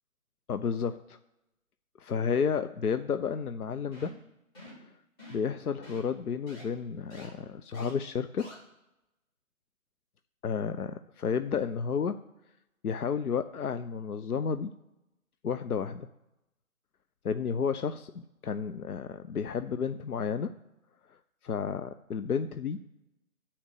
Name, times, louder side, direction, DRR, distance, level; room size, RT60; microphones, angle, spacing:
voice 1, 0.5-1.2 2.0-4.1 4.7-4.9 5.3-8.5 10.4-12.2 12.8-14.7 15.4-16.1 17.2-18.1 18.4-20.5 21.1-22.8, left 6 dB, 80° left, 10 dB, 0.6 m, -32 dB
sound 1, 3.9-4.2 4.6-4.8 5.2-5.5 5.8-6.0 6.5-6.6 7.1-7.3 7.7-7.9 8.4-8.5, left 1 dB, 15° left, 3.5 m, -48 dB
8.3 x 4.3 x 6.6 m, 0.92 s
figure-of-eight pair, 160°, 44 cm